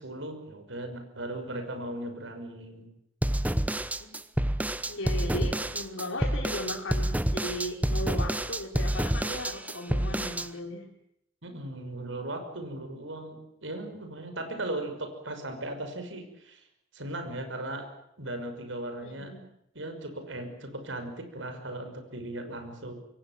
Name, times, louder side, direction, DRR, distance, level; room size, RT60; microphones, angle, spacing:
voice 1, 0.0-2.9 11.4-16.6 16.9-17.9 18.2-19.3 19.7-22.9, right 1 dB, 75° right, 6 dB, 6.0 m, -37 dB
sound 1, 3.2-10.5, right 1 dB, 10° right, 0.9 m, -28 dB
voice 2, 4.9-10.8 19.0-19.4, left 1 dB, 90° left, -1 dB, 3.8 m, -36 dB
26.0 x 22.5 x 7.5 m, 0.79 s
head